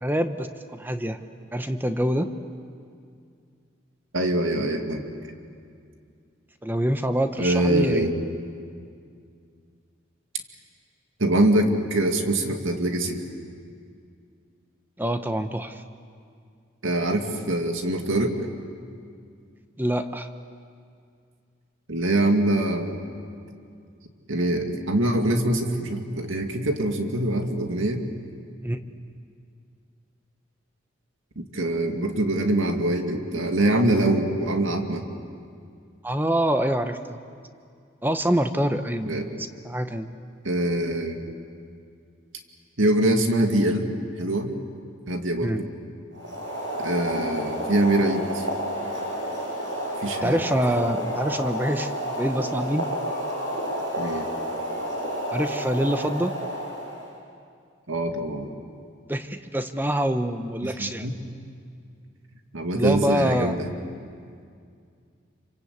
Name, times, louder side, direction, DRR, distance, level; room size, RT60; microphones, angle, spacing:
voice 1, 0.0-1.2 1.5-2.3 6.6-8.1 15.0-15.8 19.8-20.3 28.6-28.8 36.0-37.2 38.0-40.1 45.4-45.6 50.2-51.9 52.2-52.9 55.3-56.3 59.1-61.1 62.7-63.6, equal, 10° right, 8 dB, 0.9 m, -25 dB
voice 2, 4.1-5.1 7.4-8.1 11.2-13.2 16.8-18.5 21.9-23.0 24.3-28.0 31.4-35.0 39.1-39.3 40.4-41.2 42.8-43.9 44.2-44.5 45.1-45.7 46.8-48.4 50.0-50.4 54.0-54.3 57.9-58.5 60.6-61.2 62.5-63.6, right 1 dB, 90° right, 4 dB, 2.3 m, -24 dB
Boiling, 46.1-57.1, equal, 70° right, 8.0 m, -30 dB
27.5 x 25.0 x 8.2 m, 2.3 s
head